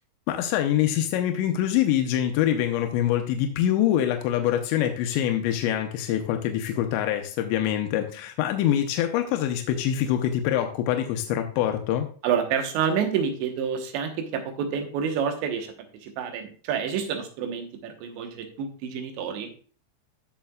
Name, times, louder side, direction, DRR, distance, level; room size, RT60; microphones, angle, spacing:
voice 1, 0.3-12.1, left 11 dB, 85° left, 5 dB, 3.0 m, -25 dB
voice 2, 12.2-15.7 16.0-19.5, right 7 dB, 85° right, 5 dB, 3.5 m, -28 dB
13.0 x 6.7 x 2.4 m, 0.42 s
omnidirectional pair, 5.0 m